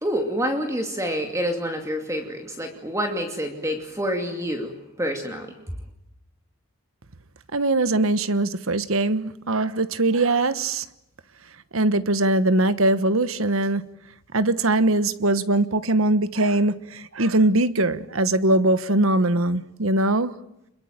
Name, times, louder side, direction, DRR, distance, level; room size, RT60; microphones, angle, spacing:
voice 1, 0.0-4.7 5.0-5.6, equal, 15° right, 2.6 m, -27 dB
voice 2, 7.5-10.8 11.7-13.8 14.3-20.3, right 2 dB, 75° right, 1.3 m, -21 dB
27.5 x 22.5 x 9.0 m
head